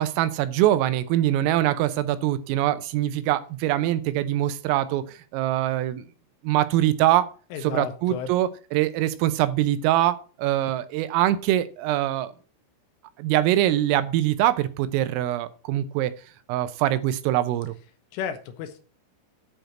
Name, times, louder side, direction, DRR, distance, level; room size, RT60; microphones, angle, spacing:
voice 1, 0.0-6.0 6.4-7.3 7.6-12.3 13.2-16.1 16.5-17.7, right 13 dB, 80° right, 12 dB, 3.4 m, -23 dB
voice 2, 7.5-8.3 18.1-18.8, left 8 dB, 75° left, 8 dB, 3.4 m, -33 dB
10.5 x 4.5 x 7.8 m, 0.38 s
omnidirectional pair, 6.0 m